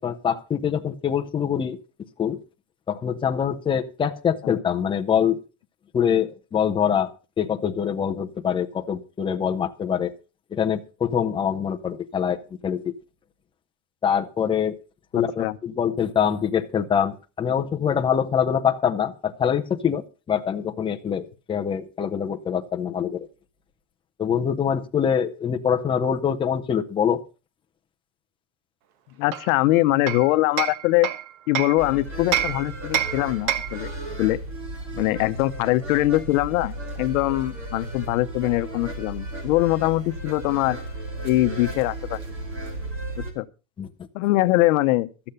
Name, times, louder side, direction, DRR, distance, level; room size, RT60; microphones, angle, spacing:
voice 1, 0.0-1.8 2.2-2.4 2.9-5.4 5.9-10.1 10.5-12.9 14.0-14.8 15.1-23.3 24.2-27.2 43.8-43.9, left 8 dB, 10° left, 0.6 m, -24 dB
voice 2, 15.1-15.6 29.2-31.1 31.5-33.9 34.2-34.4 34.9-40.8 41.2-42.2 43.3-43.5 44.1-45.1, left 18 dB, 70° left, 0.9 m, -22 dB
Hammer, 29.3-31.8 32.3-33.9, right 10 dB, 85° right, 1.6 m, -28 dB
sound 1, 31.8-43.3, right 1 dB, 30° right, 3.0 m, -35 dB
13.0 x 8.7 x 5.4 m
cardioid pair, 170°, 42 cm